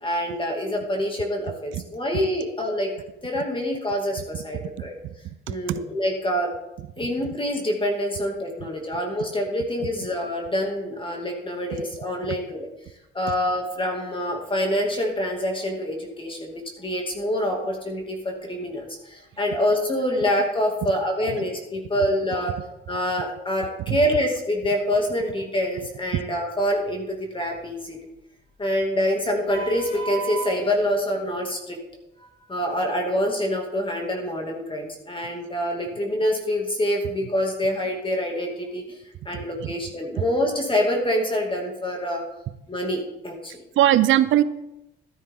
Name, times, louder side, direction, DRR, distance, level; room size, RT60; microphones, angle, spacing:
voice 1, 0.0-2.9 3.2-4.9 5.5-6.5 7.0-12.7 13.1-22.5 22.9-28.0 28.6-31.8 32.5-39.0 39.2-42.2 42.7-43.5, equal, 25° left, 1 dB, 2.6 m, -26 dB
voice 2, 5.5-5.8 12.3-12.4 23.9-24.0 26.1-26.2 39.6-39.7 43.8-44.4, right 12 dB, 75° right, 15 dB, 0.7 m, -20 dB
14.0 x 9.7 x 3.8 m, 0.90 s
cardioid pair, 90°, 20 cm